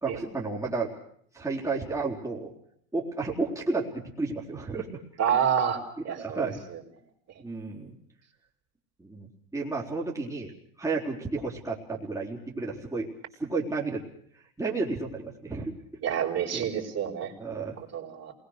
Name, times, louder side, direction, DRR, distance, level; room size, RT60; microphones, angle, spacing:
voice 1, 0.0-0.9 1.3-2.5 2.9-5.0 6.2-6.6 7.4-8.0 9.0-10.5 10.8-13.1 13.4-14.0 14.6-15.7 16.5-16.6 17.4-17.8, right 3 dB, 10° right, -4 dB, 4.0 m, -32 dB
voice 2, 5.2-5.8 6.0-6.5 16.0-18.3, right 8 dB, 40° right, -1 dB, 4.7 m, -28 dB
27.5 x 20.5 x 6.6 m, 0.64 s
hypercardioid pair, 95°, 41 cm